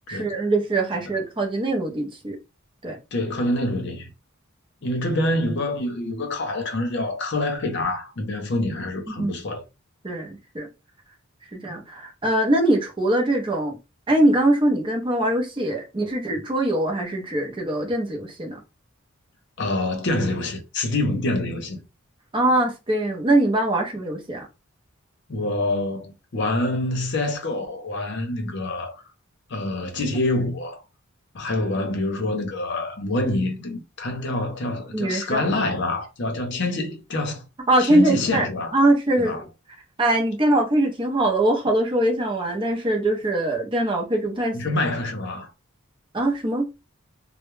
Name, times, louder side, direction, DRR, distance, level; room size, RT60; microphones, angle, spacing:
voice 1, 0.1-2.4 2.8-3.0 9.2-9.3 10.0-10.7 11.5-13.8 14.1-18.6 22.3-24.5 34.9-35.5 37.7-38.5 38.7-39.4 40.0-44.6 46.1-46.7, right 1 dB, 25° right, 0.6 m, -22 dB
voice 2, 3.1-4.1 4.8-9.6 19.6-21.8 25.3-28.9 29.5-30.8 31.3-37.4 37.8-38.7 39.2-39.4 44.5-45.5, left 2 dB, 60° left, 0.7 m, -26 dB
2.2 x 2.0 x 3.1 m
head